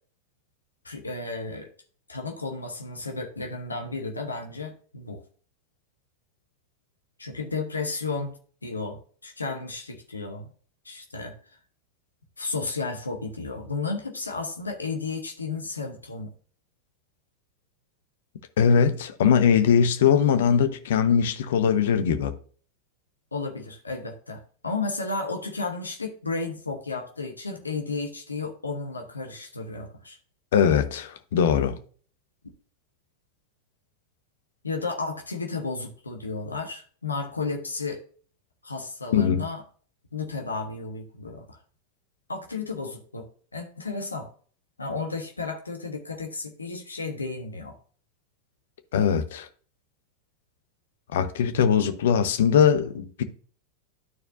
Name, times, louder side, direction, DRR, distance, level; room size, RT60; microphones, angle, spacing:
voice 1, 0.8-1.7 2.1-5.2 7.2-10.5 10.8-11.3 12.4-16.3 23.3-30.2 34.6-38.0 38.6-39.6 40.1-41.6 42.3-43.3 43.5-44.3 44.8-47.8, left 3 dB, 80° left, 1.2 m, -33 dB
voice 2, 18.6-22.3 30.5-31.8 39.1-39.4 48.9-49.5 51.1-53.2, left 7 dB, 60° left, 0.9 m, -21 dB
12.5 x 4.4 x 2.6 m
figure-of-eight pair, 90°, 0 cm